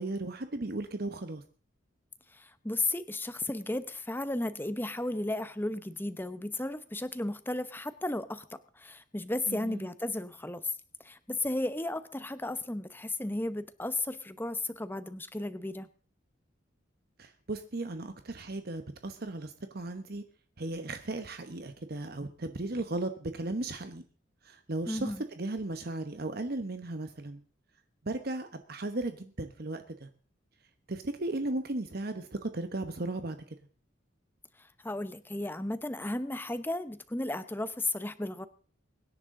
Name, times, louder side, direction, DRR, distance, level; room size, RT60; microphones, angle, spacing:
voice 1, 0.0-1.4 9.5-9.9 17.2-20.2 20.6-24.0 24.4-27.4 28.0-30.1 30.9-33.4, right 2 dB, 50° right, 8 dB, 1.1 m, -36 dB
voice 2, 2.3-10.6 11.0-15.9 24.9-25.2 34.8-38.5, left 2 dB, 10° left, 13 dB, 0.8 m, -34 dB
24.0 x 10.5 x 3.8 m, 0.40 s
head